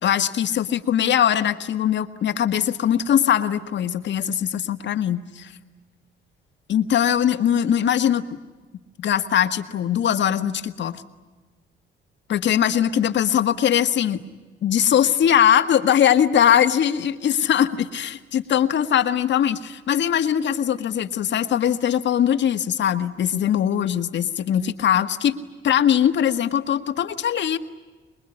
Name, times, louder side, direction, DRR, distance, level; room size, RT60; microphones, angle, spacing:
voice 1, 0.0-5.5 6.7-8.2 9.0-11.0 12.3-14.2 14.6-27.6, left 9 dB, 65° left, 9 dB, 1.7 m, -21 dB
26.0 x 22.0 x 10.0 m, 1.3 s
cardioid pair, 90°, 20 cm